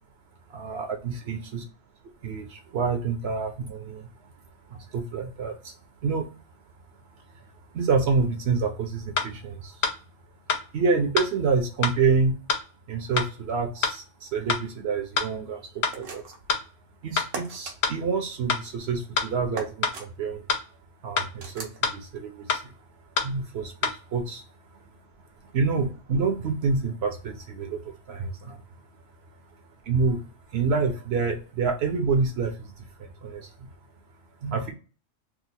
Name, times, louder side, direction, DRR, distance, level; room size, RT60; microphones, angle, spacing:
voice 1, 0.5-1.6 2.2-4.1 4.7-5.7 6.0-6.3 7.3-7.5 7.7-9.9 10.7-12.3 12.9-16.2 17.0-20.4 21.0-22.7 23.2-24.4 25.5-28.6 29.8-30.2 30.5-33.5 34.4-34.7, right 4 dB, 65° right, 4 dB, 0.8 m, -27 dB
sound 1, 9.2-9.3 9.8-10.0 10.5-10.6 11.2-11.3 11.8-12.0 12.5-12.6 13.2-13.3 13.8-14.0 14.5-14.6 15.2-15.3 15.8-16.0 16.5-16.6 17.2-17.3 17.8-18.0 18.5-18.6 19.2-19.3 19.8-20.0 20.5-20.6 21.2-21.3 21.8-22.0 22.5-22.6 23.2-23.3 23.8-24.0, left 5 dB, 65° left, 0.8 m, -25 dB
sound 2, 15.9-16.5 17.3-17.8 19.5-20.1 21.4-21.8, right 4 dB, 90° right, 1.1 m, -37 dB
2.8 x 2.4 x 4.0 m, 0.36 s
omnidirectional pair, 1.3 m